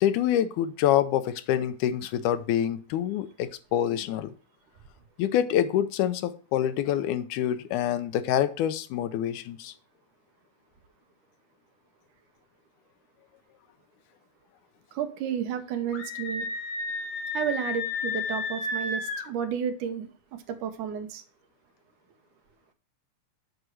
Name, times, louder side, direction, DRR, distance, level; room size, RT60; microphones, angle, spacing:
voice 1, 0.0-4.3 5.2-9.7, left 10 dB, 85° left, 2.1 m, -26 dB
voice 2, 14.9-16.5 17.3-20.1 20.5-21.2, right 8 dB, 85° right, 2.4 m, -31 dB
Screaming, 15.9-19.3, left 3 dB, 65° left, 2.0 m, -32 dB
8.0 x 4.8 x 6.2 m
omnidirectional pair, 3.5 m